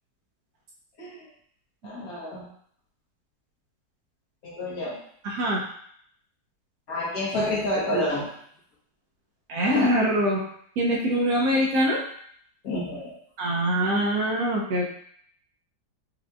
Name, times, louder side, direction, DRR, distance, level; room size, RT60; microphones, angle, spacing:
voice 1, 1.8-2.4 4.4-5.0 6.9-8.3 12.6-13.1, left 1 dB, 60° left, -6 dB, 1.6 m, -29 dB
voice 2, 5.2-5.6 9.5-10.4 10.8-12.0 13.4-14.8, equal, 65° right, -2 dB, 1.0 m, -23 dB
5.0 x 2.7 x 2.3 m, 0.64 s
omnidirectional pair, 1.8 m